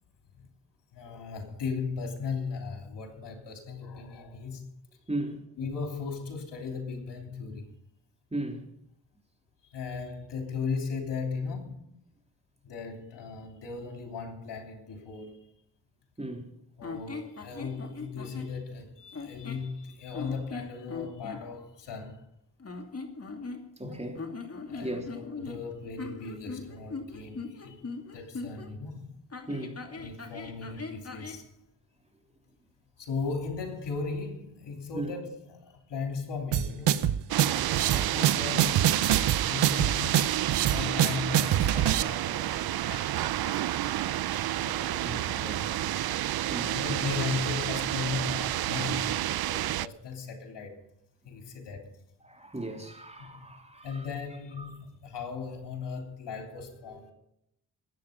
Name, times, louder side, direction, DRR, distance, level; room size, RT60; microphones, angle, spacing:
voice 1, 0.9-4.6 5.6-7.8 9.7-12.0 12.6-15.5 16.8-22.2 23.8-24.1 24.7-29.2 29.8-31.5 33.0-37.2 37.6-37.7 38.1-43.9 44.6-45.8 46.2-50.8 51.2-51.9 53.2-53.5 53.8-57.1, left 5 dB, 90° left, 3.2 m, -37 dB
voice 2, 5.1-5.4 8.3-8.6 16.2-16.5 23.8-24.2 24.8-25.1 29.5-29.8 34.9-35.1 37.9-38.3 45.0-45.2 46.5-46.7 52.2-54.0 54.6-54.7, right 1 dB, 15° right, 3.4 m, -36 dB
sound 1, 16.8-18.5 19.1-19.7 20.1-21.4 22.6-23.9 24.2-28.7 29.3-31.4, left 4 dB, 35° left, 2.4 m, -40 dB
sound 2, 36.5-42.0, right 11 dB, 85° right, 0.9 m, -25 dB
sound 3, 37.3-49.9, right 13 dB, 60° right, 0.5 m, -30 dB
21.0 x 8.8 x 5.2 m
cardioid pair, 70°, 41 cm